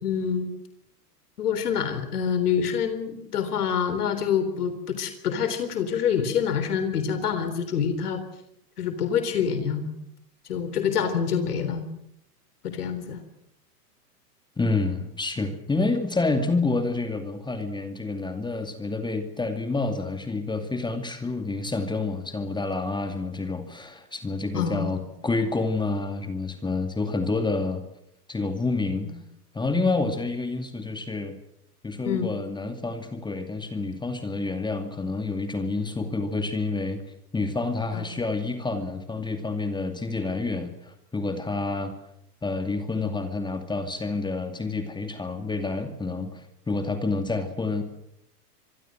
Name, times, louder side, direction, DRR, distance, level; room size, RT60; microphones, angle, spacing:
voice 1, 0.0-0.5 1.4-8.2 8.8-9.9 10.5-11.8 12.6-13.2 24.5-25.0 32.1-32.3 37.9-38.0, left 7 dB, 70° left, 10 dB, 3.9 m, -26 dB
voice 2, 14.6-27.8 28.3-29.1 29.5-31.4 31.8-37.0 37.3-41.9 42.4-47.8, left 3 dB, 10° left, 7 dB, 2.4 m, -28 dB
25.5 x 21.5 x 7.7 m, 0.79 s
hypercardioid pair, 105°, 48 cm